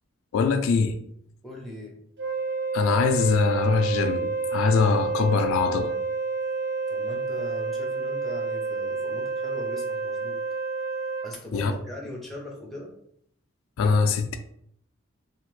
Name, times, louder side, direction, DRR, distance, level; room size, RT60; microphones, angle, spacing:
voice 1, 0.3-1.0 2.7-5.9 11.5-11.7 13.8-14.4, left 5 dB, 70° left, 0.3 m, -23 dB
voice 2, 1.4-2.0 6.9-10.4 11.2-12.9, left 1 dB, ahead, 0.6 m, -39 dB
Wind instrument woodwind instrument, 2.2-11.3, right 4 dB, 50° right, 0.6 m, -29 dB
2.8 x 2.4 x 3.0 m
head